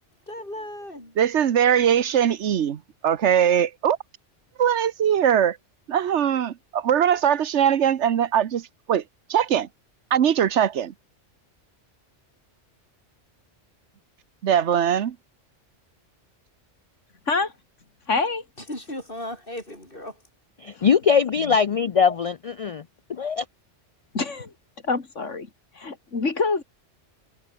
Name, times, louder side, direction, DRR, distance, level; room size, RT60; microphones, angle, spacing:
voice 1, 0.3-1.2 18.7-20.2, left 1 dB, 45° left, 7.9 m, -36 dB
voice 2, 1.2-4.0 4.6-5.6 5.9-9.0 9.3-9.7 10.1-10.9 14.4-15.2, right 9 dB, 70° right, 1.2 m, -21 dB
voice 3, 18.1-18.4 20.8-20.9 21.4-21.6 24.1-24.5 24.8-25.5 25.7-26.6, left 4 dB, 85° left, 3.0 m, -26 dB
voice 4, 20.6-22.8 23.1-23.4, left 6 dB, 60° left, 0.3 m, -21 dB
omnidirectional pair, 1.2 m